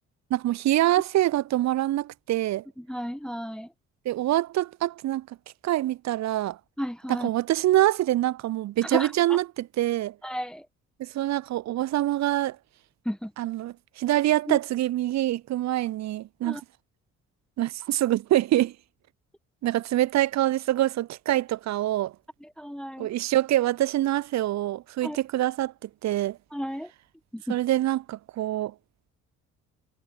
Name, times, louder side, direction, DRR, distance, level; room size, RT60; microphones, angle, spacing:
voice 1, 0.3-2.6 4.0-5.3 5.6-6.6 7.1-10.1 11.0-12.6 13.4-16.6 17.6-18.7 19.6-22.1 23.0-26.4 27.5-28.7, right 14 dB, 40° right, 0.6 m, -25 dB
voice 2, 2.8-3.7 6.8-7.3 8.8-9.4 10.2-10.7 13.0-13.3 14.5-14.6 16.4-16.6 22.4-23.1 25.0-25.2 26.5-26.9 27.3-27.6, equal, ahead, 1.5 m, -33 dB
figure-of-eight pair, 45°, 42 cm